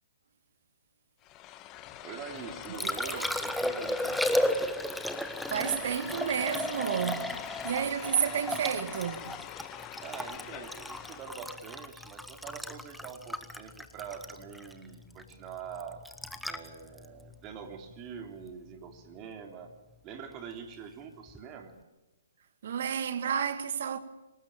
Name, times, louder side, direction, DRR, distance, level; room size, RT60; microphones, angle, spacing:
sound 1, 1.2-11.5, left 12 dB, 25° left, 1.5 m, -44 dB
voice 1, 2.0-4.6 10.0-16.0 16.4-19.7 20.0-21.7, right 7 dB, 30° right, 3.3 m, -44 dB
Liquid, 2.4-18.5 21.3-21.4, left 1 dB, ahead, 1.2 m, -35 dB
voice 2, 2.8-3.3 5.5-7.3 7.6-9.4 22.6-24.0, right 8 dB, 55° right, 2.0 m, -31 dB
26.0 x 19.0 x 8.9 m
hypercardioid pair, 135°, 0 cm